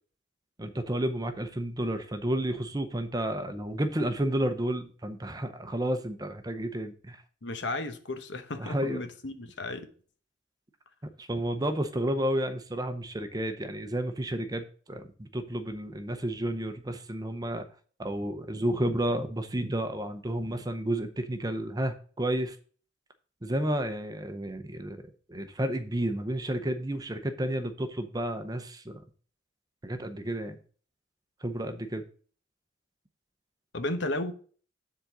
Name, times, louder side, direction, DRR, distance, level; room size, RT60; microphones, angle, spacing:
voice 1, 0.6-7.2 8.6-9.0 11.2-17.7 18.0-22.6 23.4-25.0 25.3-29.0 29.8-30.6 31.4-32.0, right 1 dB, 20° right, 0.6 m, -31 dB
voice 2, 7.4-9.9 33.7-34.3, left 2 dB, 65° left, 0.9 m, -34 dB
7.3 x 3.9 x 6.6 m
head